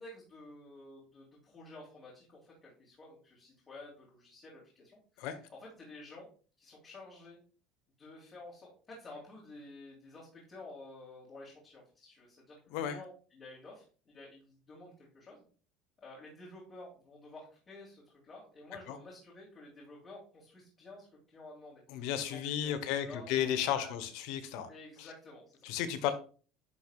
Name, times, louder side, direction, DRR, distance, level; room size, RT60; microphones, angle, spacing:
voice 1, 0.0-5.3 5.8-6.3 6.6-7.4 8.0-15.4 16.0-23.9 24.7-25.6 26.0-26.1, left 2 dB, 35° left, -5 dB, 3.2 m, -51 dB
voice 2, 21.9-24.7 25.0-25.1 25.6-26.1, left 10 dB, 70° left, 10 dB, 1.1 m, -34 dB
11.0 x 4.7 x 2.4 m, 0.38 s
supercardioid pair, 100°, 0 cm